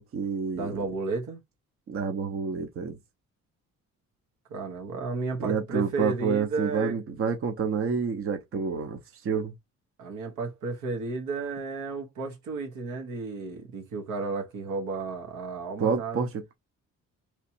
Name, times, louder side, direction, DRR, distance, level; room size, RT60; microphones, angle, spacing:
voice 1, 0.0-0.8 1.9-3.0 5.4-9.5 15.8-16.4, right 6 dB, 45° right, 0.8 m, -28 dB
voice 2, 0.5-1.4 4.5-7.0 10.0-16.2, right 3 dB, 85° right, 1.3 m, -33 dB
3.2 x 2.8 x 2.8 m
cardioid pair, 90°, 30 cm